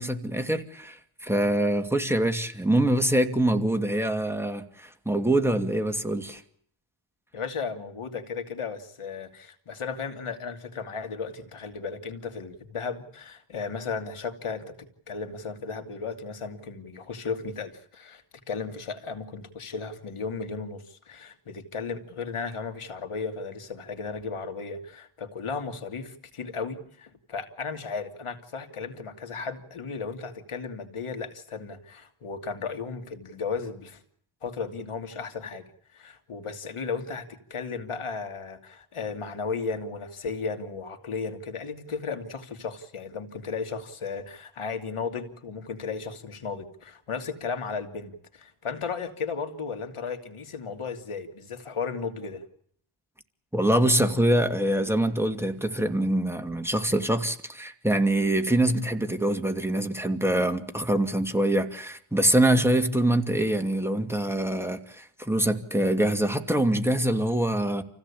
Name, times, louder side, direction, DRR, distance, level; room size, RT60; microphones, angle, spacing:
voice 1, 0.0-6.4 53.5-67.8, right 1 dB, 5° right, 2.6 m, -24 dB
voice 2, 7.3-14.7 15.1-34.0 34.4-52.4, left 5 dB, 80° left, 2.8 m, -35 dB
28.5 x 16.5 x 8.7 m
wide cardioid pair, 85°, 50 cm